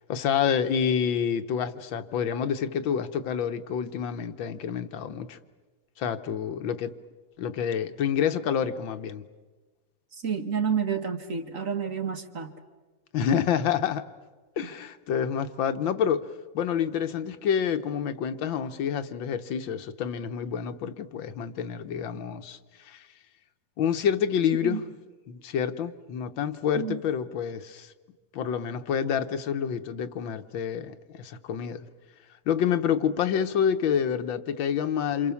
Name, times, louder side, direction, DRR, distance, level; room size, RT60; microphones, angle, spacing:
voice 1, 0.1-5.4 6.0-6.9 7.4-9.2 13.1-14.1 14.6-16.3 16.5-22.6 22.9-23.0 23.8-24.9 25.3-27.9 28.3-31.8 32.5-35.3, left 8 dB, 85° left, 9 dB, 1.9 m, -28 dB
voice 2, 10.2-12.5 24.6-24.8 26.7-27.0, right 6 dB, 45° right, 7 dB, 1.9 m, -29 dB
28.5 x 27.5 x 7.1 m, 1.3 s
omnidirectional pair, 2.0 m